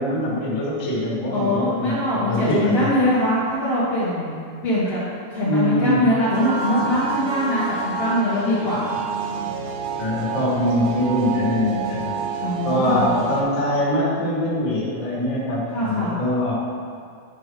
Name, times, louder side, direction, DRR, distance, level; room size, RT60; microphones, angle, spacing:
voice 1, 0.0-2.9 5.4-6.0 10.0-12.1 12.6-16.5, left 1 dB, 45° left, -7 dB, 1.6 m, -23 dB
voice 2, 1.3-4.4 4.6-5.0 5.3-8.8 12.4-13.1 15.7-16.2, left 1 dB, 75° left, -12 dB, 1.4 m, -22 dB
sound 1, 6.3-13.4, right 5 dB, 85° right, 3.3 m, -28 dB
12.0 x 5.2 x 3.2 m, 2.2 s
omnidirectional pair, 5.6 m